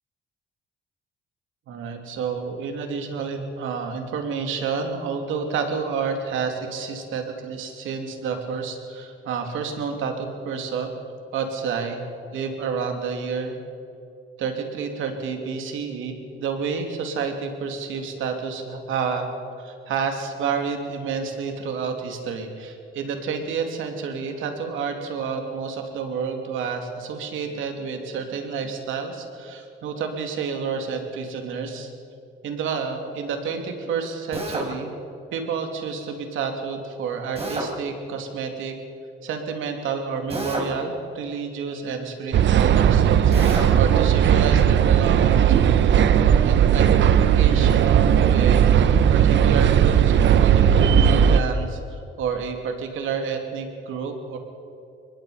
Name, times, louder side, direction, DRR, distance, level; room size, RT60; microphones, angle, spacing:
voice 1, 1.7-10.9 11.3-12.1 12.3-13.6 14.4-19.3 19.6-31.9 32.4-34.9 35.3-38.7 39.2-48.7 49.1-54.4, right 5 dB, 85° right, 4 dB, 3.0 m, -29 dB
Drill, 34.3-34.7 37.3-37.7 40.3-40.7 43.3-43.7, right 2 dB, 30° right, 5.0 m, -29 dB
sound 1, 42.3-51.4, right 9 dB, 65° right, 1.0 m, -17 dB
24.5 x 20.5 x 5.2 m, 2.7 s
cardioid pair, 90°, 20 cm